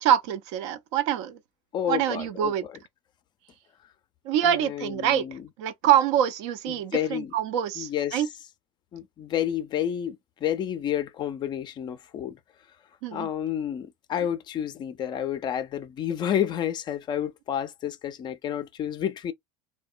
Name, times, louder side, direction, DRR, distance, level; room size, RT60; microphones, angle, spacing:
voice 1, 0.0-1.4 1.9-2.6 4.2-5.2 5.6-8.3 13.0-13.3, right 10 dB, 65° right, 0.5 m, -25 dB
voice 2, 1.7-2.8 4.4-5.5 6.7-7.3 7.8-8.3 8.9-12.4 13.1-19.3, left 10 dB, 30° left, 0.4 m, -30 dB
2.9 x 2.2 x 2.3 m
supercardioid pair, 130°, 16 cm